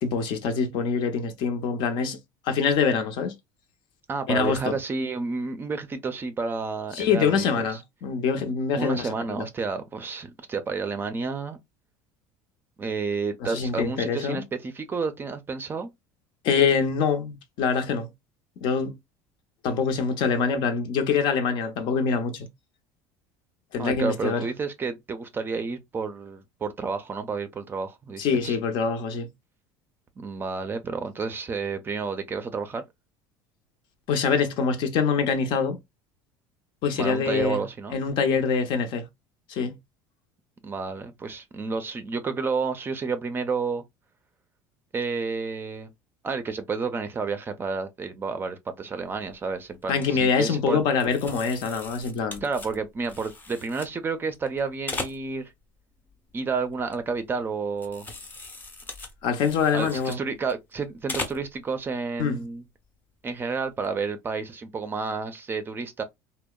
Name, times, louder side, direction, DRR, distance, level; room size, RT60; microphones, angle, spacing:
voice 1, 0.0-2.2 2.5-3.4 4.3-4.8 6.9-9.5 13.4-14.4 16.4-18.1 18.6-19.0 19.6-22.5 23.7-24.5 28.2-29.3 34.1-35.8 36.8-37.6 37.9-39.1 39.5-39.8 49.9-52.4 59.2-60.2 62.2-62.4, left 6 dB, 60° left, 0.6 m, -25 dB
voice 2, 4.1-7.8 8.8-11.6 12.8-15.9 23.8-28.6 30.2-32.8 36.9-38.0 40.6-43.8 44.9-45.9 46.2-50.8 52.4-55.5 56.3-58.1 59.7-62.6 63.2-66.0, right 4 dB, 25° right, 0.4 m, -30 dB
sound 1, 49.0-49.4 49.7-50.1 51.0-53.9 54.3-55.6 56.0-57.4 57.7-60.7 61.0-61.6 62.0-62.1 63.6-63.9, left 2 dB, 20° left, 0.6 m, -39 dB
2.7 x 2.0 x 2.2 m
supercardioid pair, 110°, 9 cm